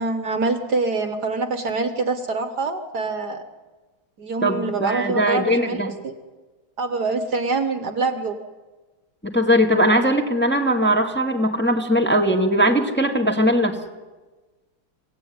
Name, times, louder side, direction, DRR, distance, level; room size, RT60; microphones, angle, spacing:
voice 1, 0.0-3.4 4.2-6.1 6.8-8.4, right 3 dB, 55° right, 8 dB, 1.8 m, -25 dB
voice 2, 4.4-5.9 9.2-13.8, equal, 5° left, 2 dB, 1.8 m, -20 dB
26.5 x 17.0 x 9.5 m, 1.3 s
omnidirectional pair, 2.3 m